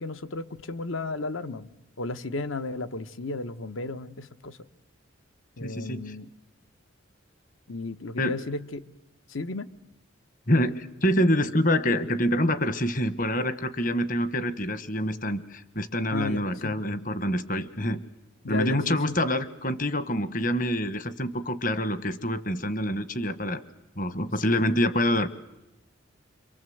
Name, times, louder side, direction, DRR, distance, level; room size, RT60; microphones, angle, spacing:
voice 1, 0.0-1.7 2.0-4.6 5.6-6.3 7.7-8.8 9.3-9.7 16.1-16.8 18.4-19.1 24.4-24.9, left 3 dB, 75° left, 13 dB, 1.1 m, -34 dB
voice 2, 5.6-6.2 8.2-8.4 10.5-18.0 18.5-23.6 24.0-25.3, left 1 dB, 40° left, 13 dB, 1.2 m, -26 dB
26.5 x 24.0 x 7.9 m, 0.94 s
head